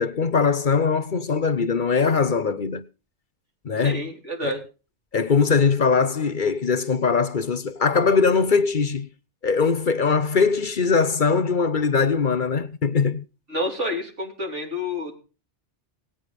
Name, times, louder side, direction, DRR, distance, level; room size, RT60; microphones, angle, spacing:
voice 1, 0.0-2.8 3.6-4.0 4.4-4.5 5.1-9.1 9.4-13.2, left 5 dB, 50° left, 0.9 m, -21 dB
voice 2, 3.8-4.6 13.5-15.2, left 1 dB, 85° right, 3.5 m, -29 dB
18.0 x 9.0 x 5.2 m
omnidirectional pair, 1.2 m